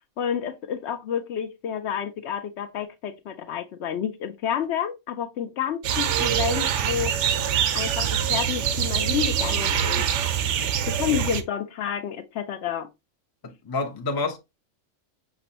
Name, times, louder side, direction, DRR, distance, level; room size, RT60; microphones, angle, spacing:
voice 1, 0.2-7.2 7.7-10.1 10.9-12.9, left 9 dB, 70° left, 0.8 m, -30 dB
sound 1, 5.8-11.4, right 9 dB, 75° right, 0.9 m, -24 dB
voice 2, 13.4-14.4, left 3 dB, 25° left, 0.5 m, -29 dB
6.0 x 3.0 x 2.8 m
omnidirectional pair, 1.3 m